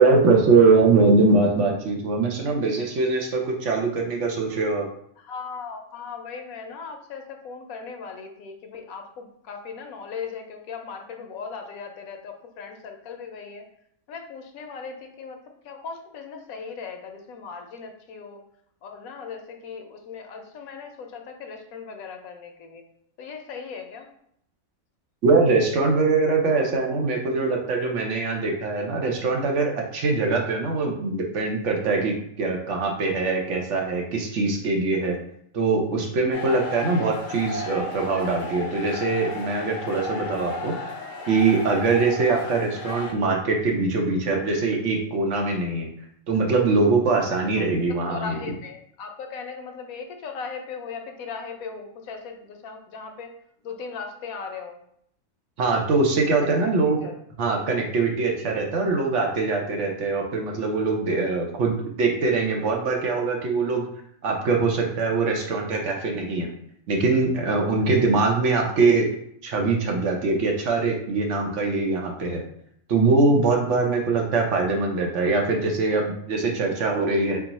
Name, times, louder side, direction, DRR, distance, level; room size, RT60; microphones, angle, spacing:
voice 1, 0.0-4.8 25.2-35.2 35.5-40.8 41.3-45.9 46.3-48.4 55.6-57.0 57.4-63.9 64.2-66.5 66.9-69.1 69.4-72.4 72.9-77.4, right 3 dB, 65° right, 1 dB, 1.0 m, -22 dB
voice 2, 5.2-13.6 14.1-15.4 15.6-18.4 18.8-22.8 23.2-24.1 47.5-47.7 48.1-53.3 53.6-54.8 56.4-56.6 57.0-57.1, left 5 dB, 85° left, 4 dB, 1.1 m, -38 dB
sound 1, 36.3-43.1, left 3 dB, 70° left, 0.4 m, -34 dB
4.5 x 2.1 x 4.0 m, 0.70 s
omnidirectional pair, 1.4 m